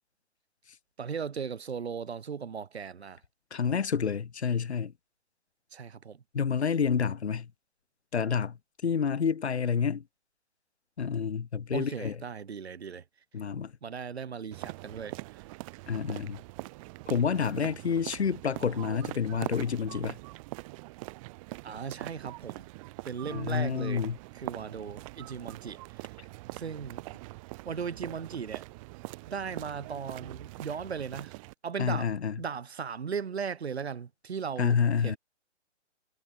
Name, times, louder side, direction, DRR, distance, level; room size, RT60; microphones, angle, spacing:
voice 1, 1.0-3.2 5.7-6.2 11.7-13.0 13.8-15.1 21.6-22.7 23.0-24.0 24.3-25.8 26.5-27.0 27.6-28.6 29.3-31.4 31.6-32.1 32.4-34.7 35.0-35.2, right 6 dB, 60° right, 4.9 m, -37 dB
voice 2, 3.5-4.9 6.3-7.5 8.1-8.6 8.8-10.0 11.0-12.2 13.3-13.7 15.9-16.4 17.1-20.2 23.3-24.2 31.8-32.4 34.6-35.2, left 6 dB, 65° left, 2.1 m, -28 dB
sound 1, 14.5-31.5, right 23 dB, 30° right, 3.8 m, -43 dB
figure-of-eight pair, 135°, 36 cm